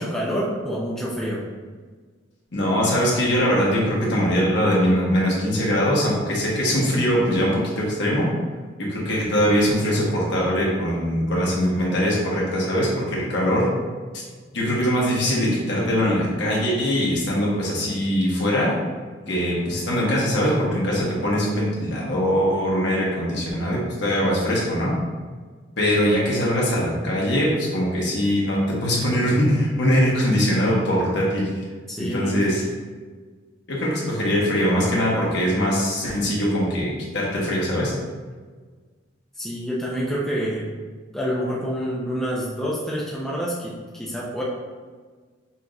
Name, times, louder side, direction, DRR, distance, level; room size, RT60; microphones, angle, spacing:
voice 1, 0.0-1.4 31.9-32.4 39.4-40.7 41.1-44.4, equal, ahead, -6 dB, 0.5 m, -27 dB
voice 2, 2.5-8.3 8.8-13.7 14.5-18.7 19.3-24.9 25.8-31.5 32.0-32.6 33.7-37.9, equal, 65° left, -4 dB, 1.2 m, -22 dB
5.6 x 2.9 x 2.6 m, 1.5 s
head